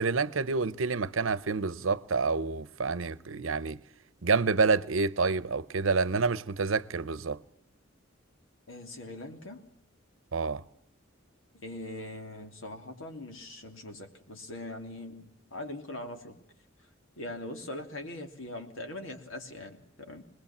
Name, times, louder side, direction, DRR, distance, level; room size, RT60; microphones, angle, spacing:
voice 1, 0.0-3.8 4.2-7.4 10.3-10.6, right 4 dB, 85° right, 0.8 m, -28 dB
voice 2, 8.7-9.6 11.5-16.4 16.8-16.9 17.2-20.2, left 1 dB, 85° left, 3.1 m, -41 dB
24.5 x 20.0 x 7.3 m
head